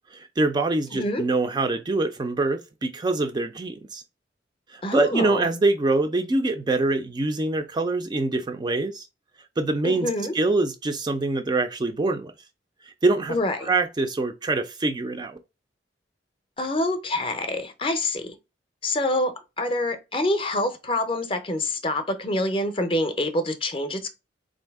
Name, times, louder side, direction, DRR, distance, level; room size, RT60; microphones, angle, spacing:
voice 1, 0.1-4.0 4.7-9.1 9.6-10.1 10.3-12.3 13.0-13.4 13.6-15.4, right 2 dB, 25° right, 0.3 m, -24 dB
voice 2, 0.9-1.2 4.8-5.5 9.8-10.3 13.3-13.7 16.6-18.3 18.8-24.1, left 1 dB, 30° left, 0.5 m, -26 dB
3.8 x 2.6 x 3.4 m
head